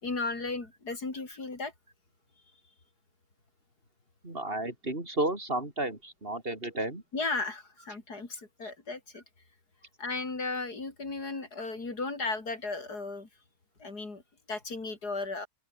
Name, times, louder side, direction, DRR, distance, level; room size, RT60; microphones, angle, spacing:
voice 1, 0.0-1.7 7.1-9.2 10.0-13.3 13.8-14.2 14.5-15.5, left 3 dB, 75° left, 4.7 m, -35 dB
voice 2, 4.2-7.0 8.6-8.7, right 2 dB, 35° right, 3.9 m, -32 dB
open air
omnidirectional pair, 1.7 m